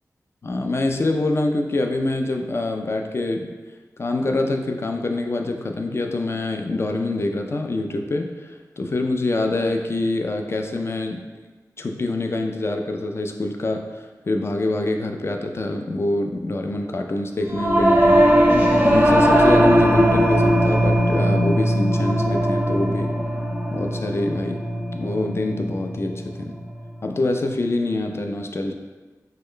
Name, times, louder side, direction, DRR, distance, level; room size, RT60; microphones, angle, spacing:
voice 1, 0.4-3.5 4.0-11.2 11.8-18.3 18.8-23.1 23.7-24.6 24.9-26.6 27.0-28.7, left 2 dB, 40° left, 4 dB, 0.3 m, -25 dB
Singing / Musical instrument, 17.5-27.1, equal, 25° right, 0.5 m, -19 dB
3.2 x 2.1 x 3.6 m, 1.3 s
wide cardioid pair, 70°, 7 cm